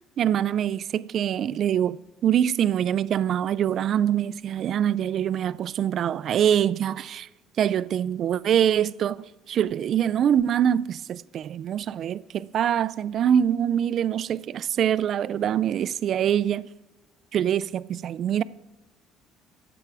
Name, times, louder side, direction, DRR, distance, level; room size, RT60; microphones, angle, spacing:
voice 1, 0.2-2.0 2.2-7.3 7.6-9.2 9.5-16.7 17.3-18.4, right 9 dB, 50° right, 0.4 m, -24 dB
23.5 x 8.0 x 4.8 m
cardioid pair, 125°, 0 cm